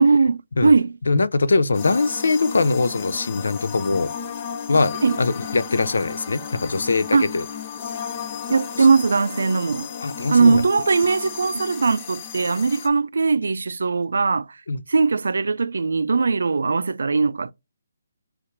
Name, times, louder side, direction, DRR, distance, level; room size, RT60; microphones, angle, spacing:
voice 1, 0.0-0.9 5.0-5.2 7.1-7.3 8.5-9.9 10.3-14.5 14.9-17.5, right 4 dB, 75° right, 0.4 m, -19 dB
voice 2, 1.1-4.1 4.7-7.4 8.8-8.9 10.0-10.6 14.7-14.8, left 3 dB, 80° left, 0.5 m, -22 dB
sound 1, 1.7-12.9, left 7 dB, 20° left, 0.4 m, -34 dB
5.7 x 2.4 x 3.2 m
hypercardioid pair, 175°, 0 cm